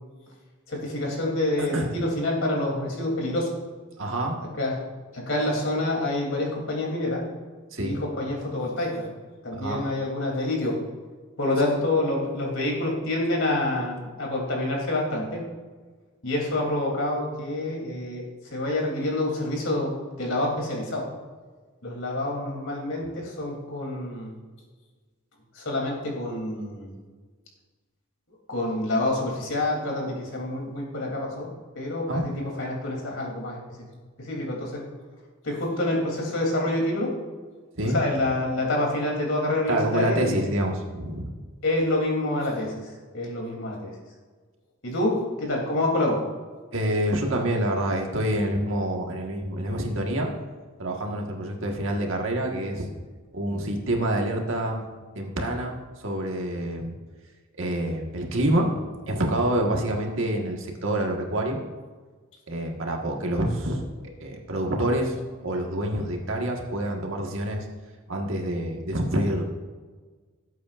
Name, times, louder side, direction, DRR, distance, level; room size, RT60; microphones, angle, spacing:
voice 1, 0.7-3.5 4.5-4.8 5.1-7.2 7.8-9.1 9.4-10.8 11.4-15.4 16.2-18.2 18.5-21.1 21.8-24.3 25.5-27.0 28.5-33.8 34.2-34.9 35.4-37.1 37.8-40.4 41.6-44.0 44.8-46.2, left 1 dB, 65° left, -1 dB, 3.0 m, -27 dB
voice 2, 1.6-1.9 4.0-4.4 7.7-8.0 9.5-9.8 32.1-32.2 37.7-38.0 39.7-41.3 46.7-50.3 50.8-52.9 53.3-54.8 55.1-56.9 57.6-61.6 62.5-63.9 64.2-65.1 65.4-67.7 68.1-69.4, right 1 dB, 65° right, 1 dB, 1.5 m, -27 dB
17.0 x 8.3 x 2.5 m, 1.4 s
head